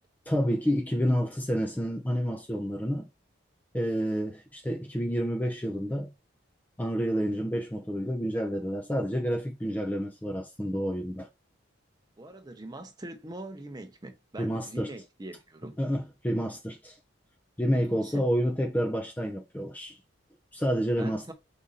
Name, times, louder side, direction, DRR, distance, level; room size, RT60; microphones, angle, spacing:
voice 1, 0.3-3.1 3.7-6.1 6.8-11.3 14.4-14.9 15.8-17.0 17.6-20.0 20.5-21.3, equal, 10° left, 0.4 m, -29 dB
voice 2, 12.2-15.8 17.7-18.2 21.0-21.3, right 1 dB, 20° right, 0.7 m, -43 dB
5.0 x 2.5 x 3.9 m
head